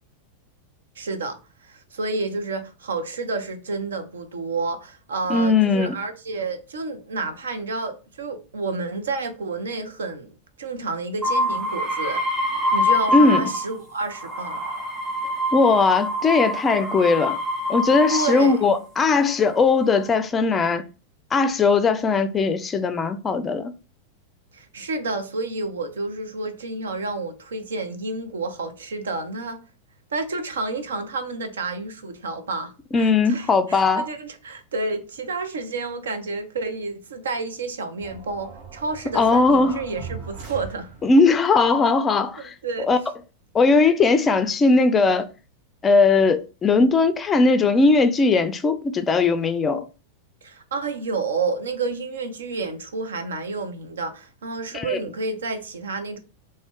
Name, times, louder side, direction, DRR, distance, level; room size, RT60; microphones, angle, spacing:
voice 1, 1.0-12.2 12.7-14.6 18.1-18.6 24.5-29.6 30.1-40.9 42.4-42.9 50.4-56.2, right 3 dB, 65° right, 0.5 m, -30 dB
voice 2, 5.3-5.9 13.1-13.5 15.5-17.4 17.7-20.8 21.3-23.7 32.9-34.1 39.1-39.8 41.0-42.5 42.9-43.0 43.5-45.3 45.8-49.8 54.7-55.0, left 4 dB, 20° left, 0.4 m, -19 dB
sound 1, 11.2-13.8 14.1-18.7 19.4-20.0, left 1 dB, 10° right, 1.6 m, -25 dB
sound 2, 38.0-41.4, right 6 dB, 50° right, 0.9 m, -40 dB
3.5 x 2.1 x 3.6 m
figure-of-eight pair, 90°, 0 cm